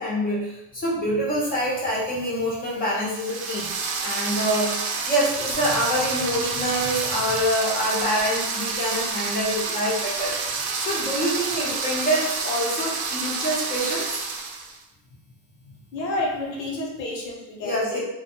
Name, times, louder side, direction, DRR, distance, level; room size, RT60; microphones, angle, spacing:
voice 1, 0.0-3.7 4.0-10.3 10.8-14.1 17.6-18.0, equal, 20° left, -5 dB, 0.5 m, -26 dB
sound 1, 3.0-14.8, right 4 dB, 70° right, 0.6 m, -29 dB
voice 2, 15.9-18.0, left 2 dB, 85° left, -1 dB, 0.9 m, -30 dB
2.2 x 2.1 x 2.8 m, 0.92 s
supercardioid pair, 110°, 50 cm